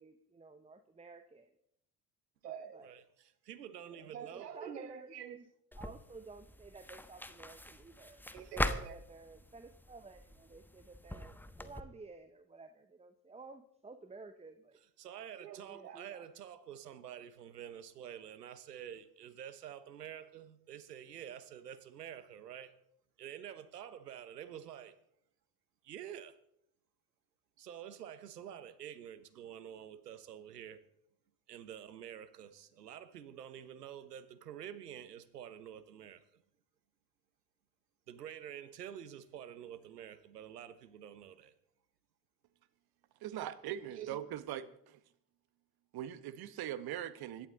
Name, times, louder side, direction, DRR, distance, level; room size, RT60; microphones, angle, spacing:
voice 1, 0.0-1.5 2.7-2.9 4.3-5.5 5.7-8.2 8.5-14.8 15.6-16.3, right 3 dB, 15° right, 1.2 m, -53 dB
voice 2, 2.4-5.4 8.3-9.0 15.0-22.7 23.2-25.0 25.8-26.4 27.6-30.8 31.5-36.4 38.1-41.5 43.9-44.2, right 9 dB, 80° right, 1.2 m, -48 dB
sound 1, 5.7-11.8, left 1 dB, 5° left, 1.2 m, -42 dB
voice 3, 43.2-45.0 45.9-47.5, right 11 dB, 50° right, 1.4 m, -41 dB
25.5 x 11.5 x 3.9 m
figure-of-eight pair, 55°, 47 cm